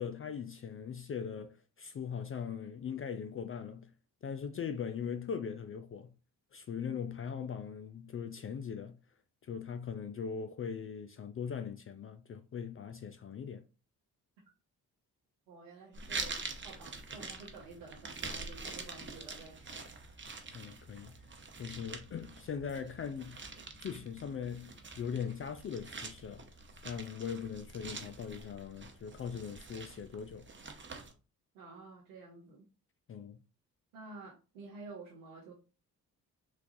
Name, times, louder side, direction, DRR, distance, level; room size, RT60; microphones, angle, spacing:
voice 1, 0.0-3.9 4.2-6.1 6.5-9.0 9.4-13.6 20.5-21.2 21.6-23.4 23.8-26.5 26.8-30.5 33.1-33.4, left 7 dB, 35° left, 0.4 m, -40 dB
voice 2, 15.5-20.3 31.5-32.7 33.9-35.5, right 3 dB, 90° right, 0.8 m, -51 dB
sound 1, 15.9-31.1, right 3 dB, 25° right, 0.9 m, -45 dB
4.0 x 2.3 x 2.6 m
hypercardioid pair, 45°, 43 cm